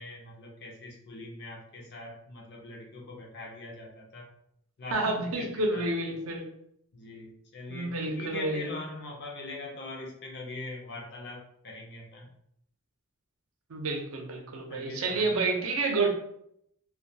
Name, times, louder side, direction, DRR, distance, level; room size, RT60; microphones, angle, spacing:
voice 1, 0.0-4.3 4.8-5.8 6.9-12.3 14.7-15.3, left 2 dB, 50° left, 0 dB, 0.5 m, -42 dB
voice 2, 4.9-6.4 7.7-8.7 13.7-16.1, right 3 dB, 65° right, 2 dB, 0.5 m, -29 dB
2.2 x 2.2 x 2.7 m, 0.73 s
head